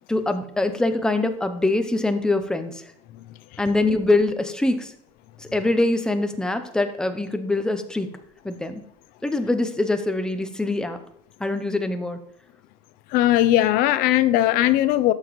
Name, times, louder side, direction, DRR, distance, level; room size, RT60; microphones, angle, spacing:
voice 1, 0.1-2.7 3.6-4.9 5.4-8.1 8.4-8.8 9.2-11.0 11.4-12.2, left 2 dB, 5° left, 0.6 m, -23 dB
voice 2, 13.1-15.1, left 14 dB, 65° left, 0.5 m, -18 dB
12.0 x 6.0 x 3.1 m
cardioid pair, 150°, 16 cm